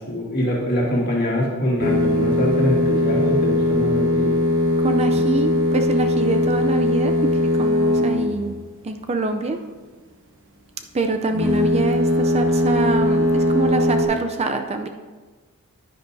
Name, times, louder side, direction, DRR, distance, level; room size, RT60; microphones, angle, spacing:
voice 1, 0.0-4.4, equal, 45° left, -3 dB, 2.1 m, -23 dB
sound 1, 1.8-8.6 11.3-14.0, left 1 dB, 60° right, 1.2 m, -20 dB
voice 2, 4.8-7.1 7.6-8.6 8.8-9.6 10.9-14.9, right 3 dB, 30° right, 6 dB, 0.4 m, -25 dB
10.0 x 10.0 x 2.7 m, 1.4 s
head